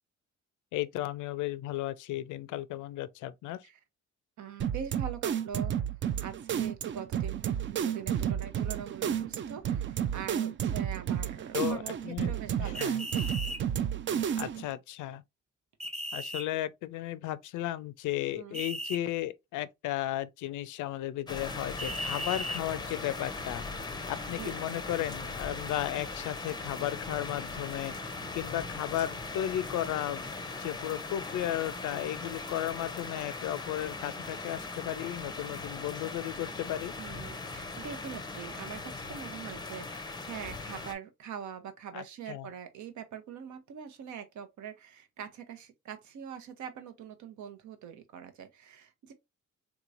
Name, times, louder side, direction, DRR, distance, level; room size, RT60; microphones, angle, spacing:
voice 1, 0.7-3.6 11.5-12.3 12.6-13.0 14.4-15.2 16.1-23.6 24.1-27.9 28.3-30.3 30.6-36.9 41.9-42.5, left 13 dB, 80° left, 0.5 m, -34 dB
voice 2, 4.4-5.7 6.2-13.2 18.4-18.6 24.4-24.6 37.0-49.1, right 8 dB, 70° right, 0.9 m, -43 dB
sound 1, 4.6-14.7, right 9 dB, 40° right, 0.4 m, -31 dB
sound 2, 12.8-13.6 15.8-16.5 18.5-19.0 21.8-22.6, equal, 20° right, 1.1 m, -36 dB
sound 3, 21.3-40.9, left 3 dB, 15° left, 0.6 m, -39 dB
3.7 x 2.9 x 2.5 m
cardioid pair, 90°, 30 cm